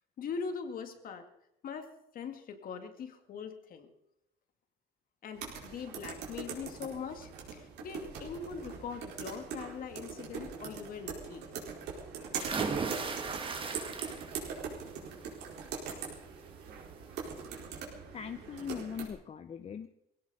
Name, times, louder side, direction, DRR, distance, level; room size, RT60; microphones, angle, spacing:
voice 1, 0.2-1.2 1.6-3.9 5.2-11.4, left 6 dB, 55° left, 7 dB, 2.2 m, -42 dB
sound 1, 5.3-19.1, right 6 dB, 85° right, 4.5 m, -42 dB
sound 2, 12.4-14.5 14.9-15.3 16.7-16.8 17.2-17.3, right 4 dB, 30° right, 1.8 m, -36 dB
voice 2, 18.1-19.9, left 7 dB, 35° left, 10 dB, 0.7 m, -40 dB
20.0 x 17.0 x 4.2 m, 0.83 s
cardioid pair, 110°, 17 cm